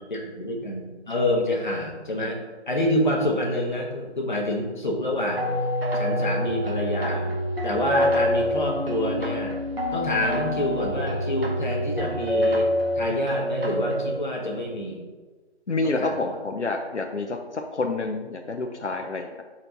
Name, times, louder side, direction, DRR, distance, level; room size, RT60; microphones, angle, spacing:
voice 1, 0.1-5.5 5.9-7.4 7.6-9.5 9.9-12.7 13.0-15.0 15.8-16.4, left 1 dB, 45° left, -1 dB, 1.2 m, -27 dB
sound 1, 5.4-14.2, equal, 60° right, 1.1 m, -26 dB
voice 2, 15.7-19.4, left 3 dB, 85° left, 4 dB, 0.7 m, -28 dB
5.9 x 4.4 x 3.9 m, 1.3 s
figure-of-eight pair, 165°, 34 cm